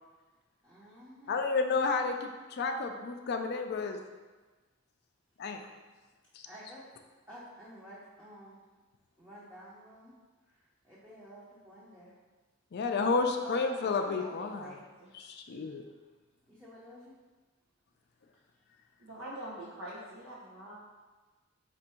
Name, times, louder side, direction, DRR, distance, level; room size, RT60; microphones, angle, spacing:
voice 1, 0.6-1.4 6.4-6.8 7.3-8.6 9.2-10.1 10.5-10.6 10.8-12.1 16.5-17.1, equal, 10° right, -9 dB, 0.7 m, -51 dB
voice 2, 1.3-4.0 5.4-5.6 12.7-14.8 15.1-15.8, left 4 dB, 50° left, 5 dB, 0.4 m, -31 dB
voice 3, 13.4-15.2 19.0-20.7, right 1 dB, 80° right, -7 dB, 0.9 m, -45 dB
4.4 x 2.6 x 4.3 m, 1.3 s
head